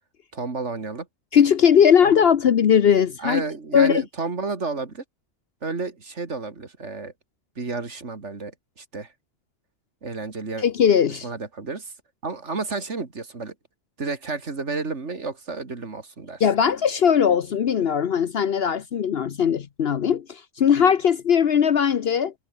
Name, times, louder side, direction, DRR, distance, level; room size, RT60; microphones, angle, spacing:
voice 1, 0.3-1.1 2.0-2.1 3.2-5.0 5.6-7.1 7.6-9.1 10.0-10.6 11.1-11.9 12.2-13.5 14.0-16.4, right 4 dB, 85° right, 2.9 m, -31 dB
voice 2, 1.3-3.4 3.7-4.0 10.6-11.3 16.4-22.3, left 8 dB, 60° left, 1.0 m, -19 dB
omnidirectional pair, 1.2 m